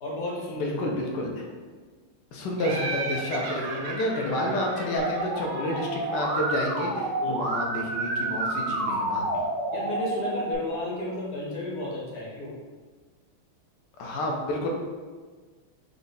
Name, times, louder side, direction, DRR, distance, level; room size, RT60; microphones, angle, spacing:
voice 1, 0.0-0.8 7.2-7.5 9.7-12.5, left 1 dB, 50° left, -5 dB, 1.4 m, -32 dB
voice 2, 0.6-1.5 2.3-9.4 14.0-14.7, left 1 dB, 70° left, 0 dB, 1.2 m, -30 dB
Laughter, 2.6-6.2, right 3 dB, 65° right, 1.0 m, -35 dB
sound 1, 3.4-9.0, left 3 dB, 90° left, 1.5 m, -48 dB
Musical instrument, 5.0-10.5, right 2 dB, 80° right, 2.0 m, -29 dB
5.3 x 2.4 x 4.0 m, 1.4 s
omnidirectional pair, 2.2 m